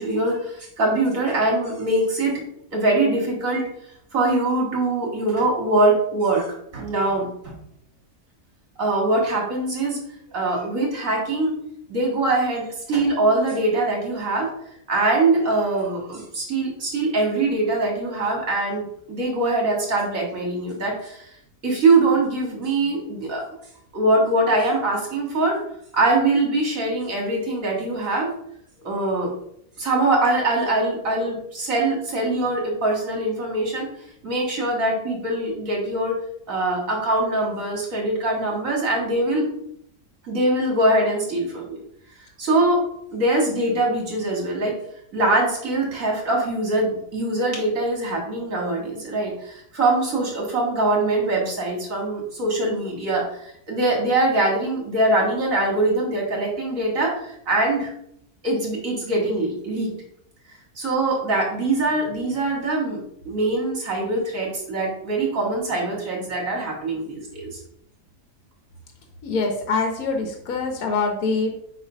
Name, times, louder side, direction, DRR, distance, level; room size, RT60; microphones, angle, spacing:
voice 1, 0.0-2.4 2.7-3.6 4.1-6.4 6.7-7.5 8.8-10.0 10.3-11.5 11.9-14.5 14.9-21.2 21.6-23.4 23.9-25.6 25.9-28.3 28.8-29.3 29.8-33.9 34.2-36.2 36.5-39.5 40.2-41.8 42.4-42.8 43.1-44.7 45.1-57.9 58.4-59.9 60.8-63.0 63.2-67.6, right 2 dB, 60° right, -2 dB, 2.4 m, -23 dB
voice 2, 69.2-71.5, left 4 dB, 70° left, 3 dB, 1.4 m, -24 dB
7.5 x 3.3 x 5.1 m, 0.72 s
omnidirectional pair, 1.6 m